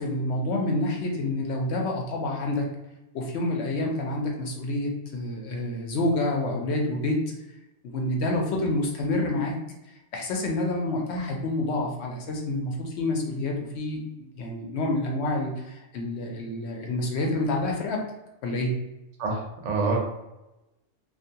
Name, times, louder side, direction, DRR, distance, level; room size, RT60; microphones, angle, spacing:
voice 1, 0.0-2.7 3.1-7.2 7.9-9.5 10.1-18.0 18.4-18.7, left 2 dB, 70° left, 1 dB, 0.8 m, -28 dB
voice 2, 19.2-20.0, right 3 dB, 75° right, 0 dB, 1.0 m, -26 dB
2.4 x 2.2 x 2.7 m, 0.95 s
omnidirectional pair, 1.3 m